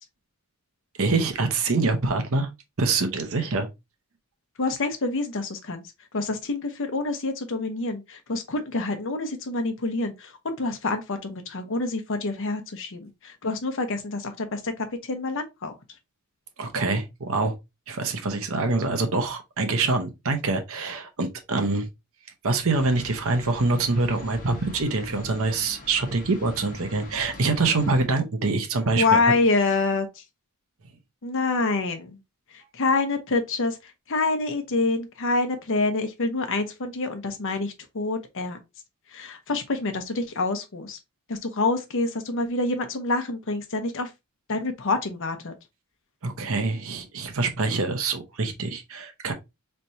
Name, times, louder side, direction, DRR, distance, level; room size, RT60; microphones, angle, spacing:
voice 1, 1.0-2.5 2.8-3.7 16.6-17.5 17.9-21.9 22.4-29.2 46.2-49.3, right 3 dB, 65° right, 0.9 m, -25 dB
voice 2, 4.6-5.8 6.1-15.8 28.9-30.2 31.2-32.2 32.5-38.6 39.1-41.0 41.3-44.1 44.5-45.5, left 3 dB, 60° left, 0.8 m, -27 dB
sound 1, 22.7-28.0, left 1 dB, 40° left, 1.3 m, -43 dB
4.4 x 3.3 x 2.7 m
head